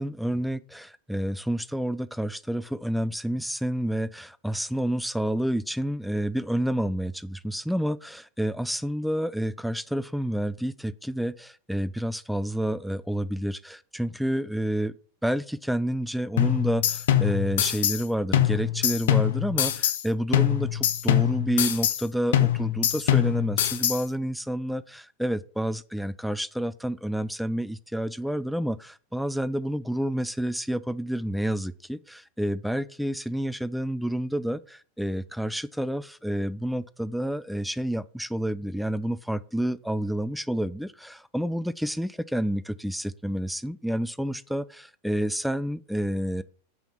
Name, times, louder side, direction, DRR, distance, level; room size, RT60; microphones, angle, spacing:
voice 1, 0.0-14.9 15.2-46.4, equal, ahead, 16 dB, 0.3 m, -29 dB
sound 1, 16.4-18.0 18.3-20.0 20.3-22.0 22.3-24.0, left 11 dB, 55° left, 0.7 m, -24 dB
6.2 x 5.2 x 5.7 m, 0.44 s
figure-of-eight pair, 90°, 0 cm